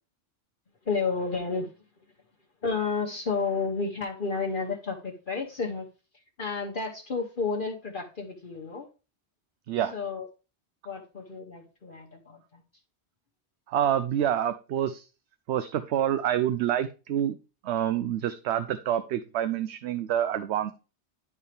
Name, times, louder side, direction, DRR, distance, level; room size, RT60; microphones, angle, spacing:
voice 1, 0.9-1.7 2.6-5.8 6.4-8.9 9.9-10.3 10.9-12.6, left 4 dB, 50° left, 2 dB, 1.1 m, -31 dB
voice 2, 13.7-15.0 15.5-17.4 17.6-20.7, right 10 dB, 75° right, 11 dB, 0.9 m, -27 dB
11.0 x 4.4 x 3.4 m, 0.32 s
omnidirectional pair, 1.1 m